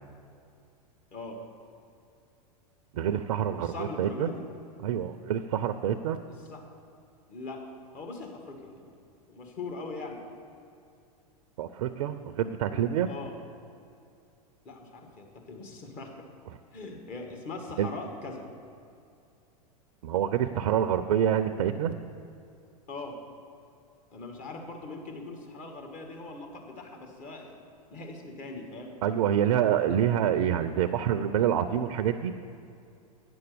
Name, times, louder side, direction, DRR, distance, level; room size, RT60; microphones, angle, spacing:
voice 1, 2.9-4.3 4.8-6.2 11.6-13.1 17.8-17.9 20.0-22.0 29.0-32.3, right 10 dB, 65° right, 10 dB, 0.5 m, -27 dB
voice 2, 3.5-4.4 6.5-6.6 7.3-7.6 7.9-8.8 9.3-10.2 13.1-13.3 14.6-16.1 16.7-18.5 22.9-23.2 24.1-27.5 27.9-29.0, left 3 dB, 45° left, 2 dB, 1.7 m, -41 dB
9.3 x 7.0 x 6.8 m, 2.5 s
hypercardioid pair, 100°, 19 cm